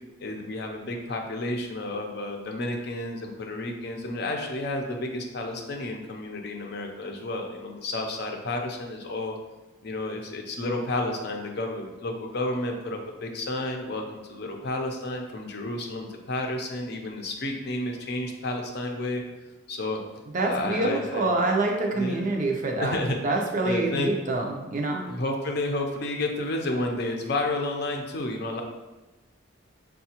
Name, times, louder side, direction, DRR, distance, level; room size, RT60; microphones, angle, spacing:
voice 1, 0.2-9.4 9.8-19.2 19.7-20.0 20.4-21.3 21.8-22.3 22.8-23.2 23.6-24.3 25.1-28.6, left 2 dB, 55° left, 3 dB, 0.6 m, -31 dB
voice 2, 20.3-23.0 23.2-25.0, right 2 dB, 40° right, 1 dB, 0.4 m, -26 dB
6.4 x 2.3 x 2.8 m, 1.1 s
head